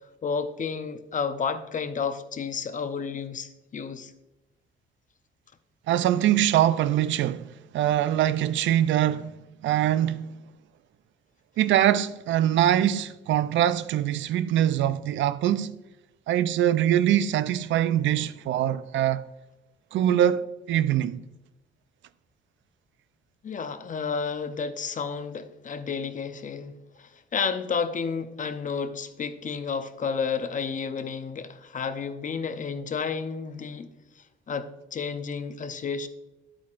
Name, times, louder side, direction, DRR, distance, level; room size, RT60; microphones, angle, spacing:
voice 1, 0.2-4.1 23.4-33.9 34.2-36.1, left 5 dB, 40° left, 0.7 m, -31 dB
voice 2, 5.9-7.5 7.7-9.3 9.6-10.3 11.6-15.8 16.3-19.2 19.9-21.2, right 11 dB, 75° right, 0.4 m, -23 dB
9.4 x 8.6 x 2.5 m
cardioid pair, 90°, 20 cm